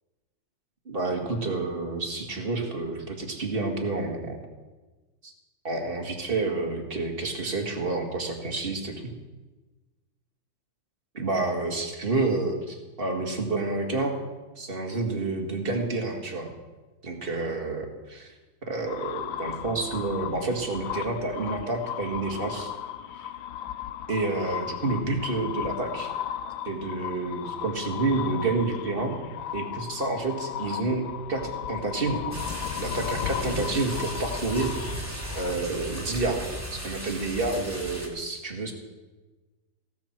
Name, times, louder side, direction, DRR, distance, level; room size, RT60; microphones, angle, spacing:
voice 1, 0.9-4.4 5.2-5.3 5.6-8.9 11.1-14.2 14.6-16.5 17.0-18.3 18.7-22.7 23.2-23.3 24.1-26.1 26.7-29.2 29.5-32.3 32.8-34.7 35.4-36.4 36.7-38.7, right 3 dB, 30° right, 2 dB, 2.0 m, -29 dB
sound 1, 18.9-35.9, left 10 dB, 85° left, 1.4 m, -36 dB
sound 2, 32.3-38.1, right 1 dB, 10° right, 3.3 m, -36 dB
16.5 x 13.0 x 4.5 m, 1.2 s
omnidirectional pair, 2.1 m